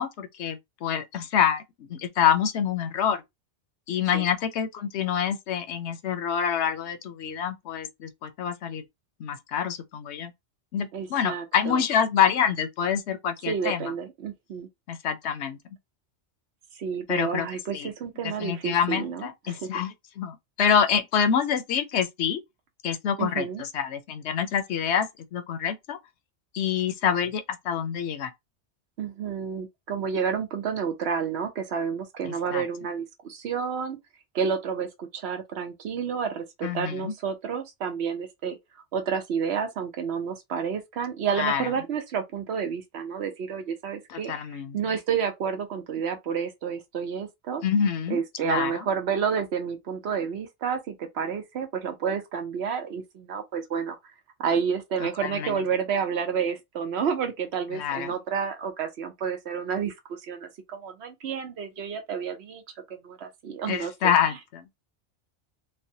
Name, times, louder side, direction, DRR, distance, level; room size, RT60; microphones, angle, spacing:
voice 1, 0.0-1.6 1.9-3.2 3.9-8.8 9.2-10.3 10.7-13.9 14.9-15.6 17.1-17.5 17.7-17.9 18.2-22.4 22.8-26.0 26.5-28.3 32.5-32.6 36.6-37.1 41.3-41.7 44.1-44.8 47.6-48.2 48.4-48.9 55.0-55.6 57.7-58.1 63.7-64.6, left 8 dB, 75° left, 0.9 m, -26 dB
voice 2, 10.9-11.8 13.5-14.7 16.7-19.7 23.2-23.6 29.0-34.0 34.3-38.6 38.9-44.3 44.7-47.6 48.1-54.0 54.4-59.9 60.2-62.6 63.0-63.9, right 6 dB, 70° right, 0.9 m, -30 dB
3.2 x 2.1 x 2.7 m
omnidirectional pair, 1.2 m